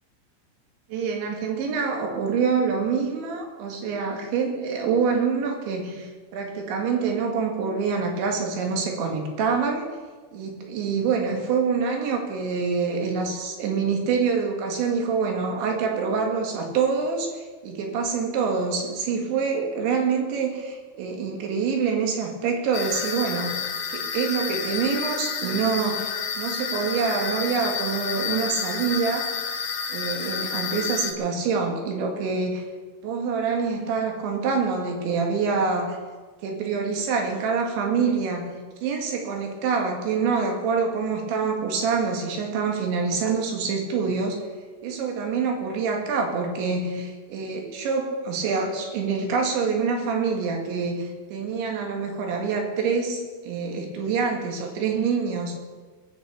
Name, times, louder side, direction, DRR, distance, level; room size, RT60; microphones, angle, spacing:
voice 1, 0.9-9.9 10.3-23.5 23.9-29.3 29.9-32.7 33.0-36.0 36.4-44.4 44.8-55.6, right 5 dB, 75° right, 2 dB, 4.2 m, -26 dB
sound 1, 22.7-31.1, left 7 dB, 75° left, 1.7 m, -30 dB
21.0 x 8.3 x 6.9 m, 1.4 s
omnidirectional pair, 5.3 m